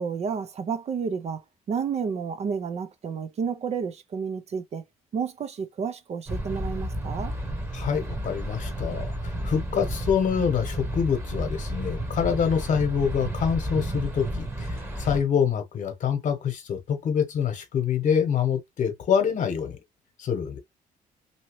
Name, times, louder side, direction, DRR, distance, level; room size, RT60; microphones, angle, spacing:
voice 1, 0.0-4.8 5.1-7.3, right 6 dB, 45° right, 0.5 m, -31 dB
sound 1, 6.3-15.2, right 1 dB, 15° right, 1.0 m, -32 dB
voice 2, 7.7-19.8 20.2-20.6, left 7 dB, 55° left, 1.0 m, -26 dB
2.8 x 2.7 x 3.0 m
cardioid pair, 110°, 15 cm